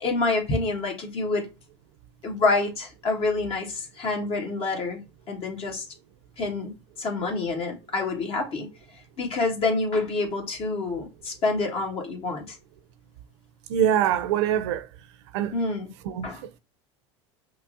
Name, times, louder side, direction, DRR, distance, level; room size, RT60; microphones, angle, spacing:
voice 1, 0.0-1.5 2.2-5.9 6.4-8.7 9.2-12.6 15.5-15.9 16.2-16.6, left 3 dB, 40° left, 1.5 m, -27 dB
voice 2, 13.7-14.9 15.3-15.5 16.1-16.3, right 10 dB, 75° right, 0.5 m, -23 dB
5.6 x 2.1 x 2.6 m
hypercardioid pair, 95°, 15 cm